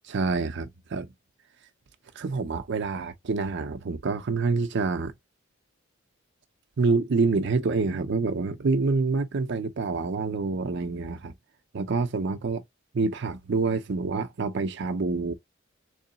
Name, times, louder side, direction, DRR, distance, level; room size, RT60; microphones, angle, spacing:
voice 1, 0.0-1.1 2.2-5.1 6.8-11.3 11.7-12.6 12.9-15.3, right 4 dB, 60° right, 0.5 m, -27 dB
3.8 x 3.1 x 2.7 m
head